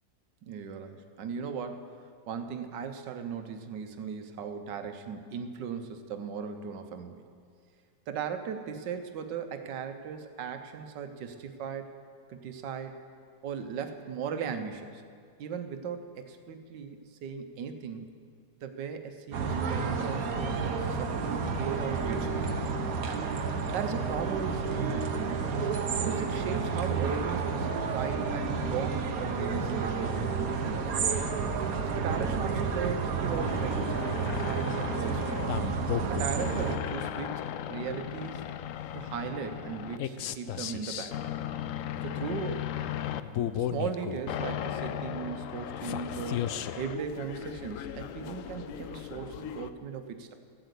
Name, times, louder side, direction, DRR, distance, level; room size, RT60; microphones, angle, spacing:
voice 1, 0.4-1.9 2.3-7.3 8.1-11.9 12.3-13.0 13.4-15.0 15.4-18.1 18.6-22.4 23.1-23.3 23.7-25.4 26.0-30.9 31.9-35.3 36.1-38.4 38.9-41.2 42.0-42.7 43.6-46.5 46.8-50.3, right 6 dB, 75° right, 7 dB, 1.6 m, -37 dB
sound 1, 19.3-36.8, right 5 dB, 60° right, 1.3 m, -30 dB
sound 2, 33.3-49.7, left 10 dB, 80° left, 0.7 m, -36 dB
14.5 x 8.0 x 8.2 m, 2.1 s
omnidirectional pair, 1.9 m